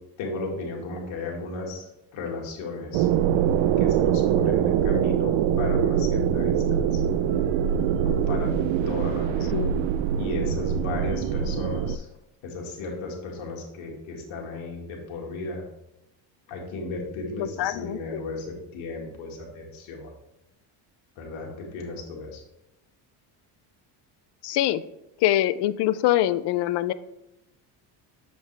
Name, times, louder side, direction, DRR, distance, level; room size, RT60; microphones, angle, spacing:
voice 1, 0.2-3.1 3.8-7.0 8.0-8.5 8.9-9.6 10.2-12.1 12.4-15.6 16.5-20.1 21.2-22.4, left 3 dB, 75° left, -1 dB, 2.1 m, -35 dB
sound 1, 2.9-12.0, right 9 dB, 70° right, 0.5 m, -23 dB
voice 2, 9.5-9.8 17.6-18.2 24.4-24.8 25.2-26.9, left 13 dB, 60° left, 15 dB, 0.5 m, -24 dB
7.7 x 5.2 x 3.4 m, 0.89 s
cardioid pair, 120°, 48 cm